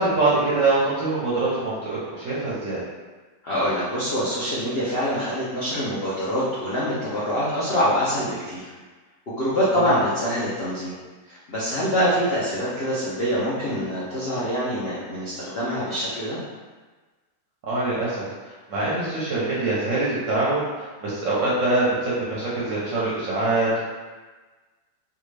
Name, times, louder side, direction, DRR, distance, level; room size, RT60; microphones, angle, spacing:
voice 1, 0.0-2.8 9.7-10.0 17.7-23.8, right 2 dB, 60° right, -8 dB, 0.8 m, -24 dB
voice 2, 3.4-8.7 9.3-11.0 11.2-16.4, equal, 90° left, -9 dB, 0.5 m, -25 dB
3.5 x 2.4 x 3.2 m, 1.3 s
omnidirectional pair, 2.0 m